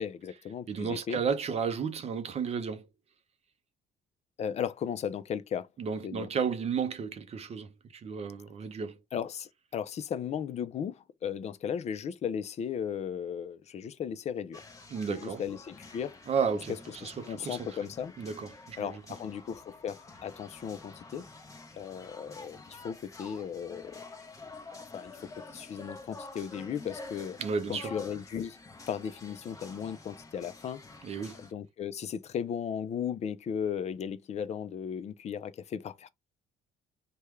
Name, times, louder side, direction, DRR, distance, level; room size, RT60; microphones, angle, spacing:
voice 1, 0.0-1.2 4.4-5.7 6.0-6.3 9.1-14.6 15.1-16.2 16.9-18.1 18.8-21.3 21.7-24.0 24.9-27.4 27.7-28.6 28.9-30.8 31.4-36.1, left 8 dB, 40° left, 0.5 m, -36 dB
voice 2, 0.7-2.9 5.8-9.0 14.9-15.4 16.3-16.8 17.0-17.7 18.2-19.0 27.4-27.9 31.0-31.4, right 6 dB, 40° right, 0.6 m, -33 dB
sound 1, 14.5-31.5, left 3 dB, 20° left, 0.8 m, -49 dB
3.4 x 2.2 x 3.1 m
cardioid pair, 110°, 17 cm